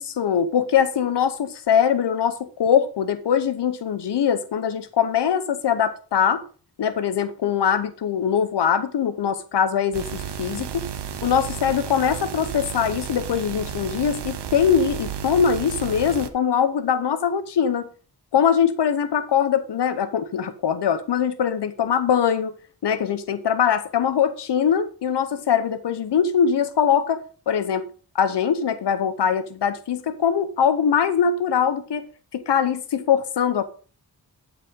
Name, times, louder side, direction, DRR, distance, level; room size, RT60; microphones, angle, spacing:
voice 1, 0.0-6.4 6.8-10.9 11.2-17.9 18.3-22.5 22.8-27.9 28.1-32.1 32.3-33.6, left 7 dB, 80° left, 0.8 m, -22 dB
sound 1, 9.9-16.3, right 8 dB, 80° right, 0.9 m, -33 dB
11.5 x 4.9 x 5.1 m
wide cardioid pair, 80°, 41 cm